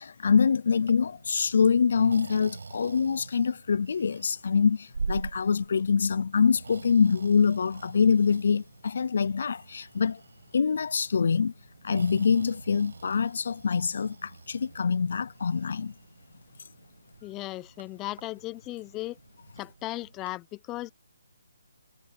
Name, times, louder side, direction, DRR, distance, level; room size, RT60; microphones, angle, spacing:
voice 1, 0.0-10.2 10.5-11.5 11.8-15.9, left 6 dB, 55° left, 0.5 m, -25 dB
Breathing, 0.7-20.4, right 4 dB, 75° right, 7.2 m, -44 dB
voice 2, 17.2-19.2 19.6-20.9, left 18 dB, 15° left, 0.7 m, -36 dB
hypercardioid pair, 160°, 0 cm